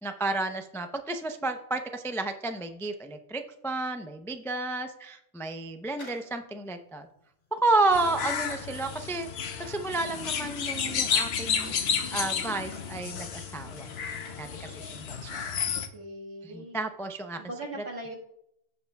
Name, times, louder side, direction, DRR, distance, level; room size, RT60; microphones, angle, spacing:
voice 1, 0.0-7.1 7.5-15.5 16.4-17.4, right 2 dB, 5° left, 6 dB, 0.3 m, -31 dB
sound 1, 5.9-11.9 12.2-14.9 15.1-15.2, left 1 dB, 90° left, 4.3 m, -53 dB
sound 2, 7.9-15.9, left 7 dB, 65° left, 1.0 m, -32 dB
voice 2, 15.7-16.8 17.4-18.2, right 1 dB, 70° right, -1 dB, 2.0 m, -40 dB
16.0 x 5.6 x 2.3 m, 0.75 s
omnidirectional pair, 1.2 m